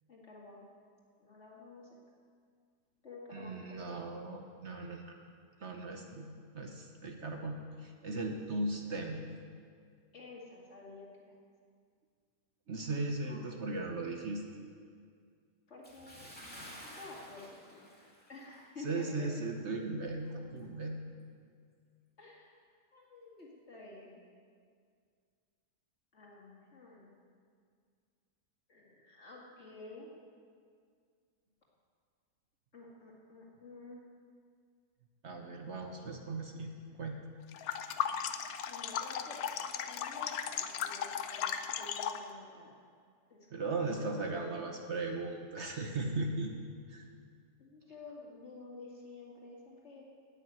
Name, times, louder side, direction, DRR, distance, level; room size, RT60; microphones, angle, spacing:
voice 1, 0.1-0.7 1.2-2.0 3.0-4.1 10.1-11.4 13.2-13.5 15.7-16.3 16.8-18.0 18.3-19.3 22.2-22.6 22.9-24.1 26.1-27.1 28.7-30.1 32.7-34.1 36.9-37.0 38.7-42.7 43.3-44.5 47.6-50.0, left 3 dB, 45° left, -3 dB, 2.4 m, -51 dB
voice 2, 3.3-5.2 5.6-9.2 12.7-14.5 18.8-21.0 35.2-36.7 37.0-37.2 43.5-46.5 46.9-47.1, right 2 dB, 55° right, 3 dB, 1.2 m, -37 dB
Bathtub (filling or washing) / Splash splatter, 15.8-18.7 19.0-19.2 19.8-19.9, equal, 5° left, 2.3 m, -51 dB
sound 1, 37.5-42.3, left 8 dB, 75° left, 1.1 m, -36 dB
9.7 x 8.9 x 9.0 m, 2.1 s
omnidirectional pair, 1.6 m